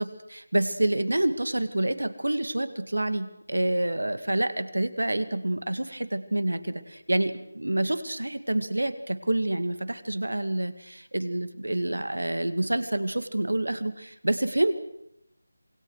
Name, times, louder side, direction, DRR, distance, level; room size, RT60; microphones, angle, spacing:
voice 1, 0.0-14.8, right 1 dB, 70° right, 11 dB, 2.2 m, -28 dB
27.0 x 22.0 x 6.5 m, 0.80 s
figure-of-eight pair, 160°, 0 cm